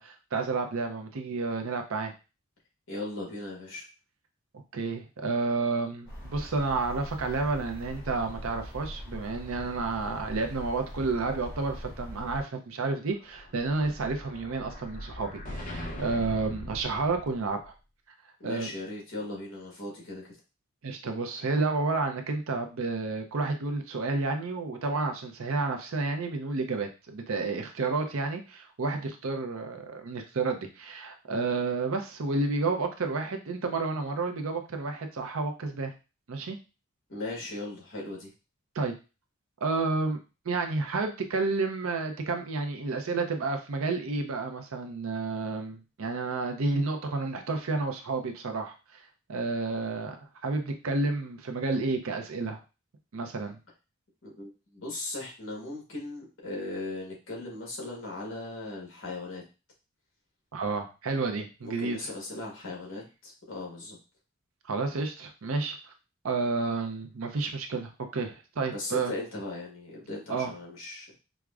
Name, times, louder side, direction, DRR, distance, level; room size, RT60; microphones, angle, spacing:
voice 1, 0.0-2.1 4.7-17.7 18.4-18.7 20.8-35.9 36.3-36.6 38.8-38.9 39.6-40.2 40.5-52.6 53.1-53.6 60.5-62.0 64.7-65.8 66.2-69.1 70.3-70.5, right 3 dB, 70° right, 5 dB, 0.5 m, -30 dB
voice 2, 2.9-3.9 18.4-20.3 37.1-38.3 54.2-59.4 61.6-64.0 68.7-71.1, left 2 dB, 55° left, -2 dB, 1.3 m, -38 dB
sound 1, 6.1-12.4, equal, 15° left, 1.4 m, -42 dB
Explosion, 13.0-17.7, left 1 dB, 35° left, 0.6 m, -41 dB
4.7 x 2.1 x 2.4 m, 0.30 s
head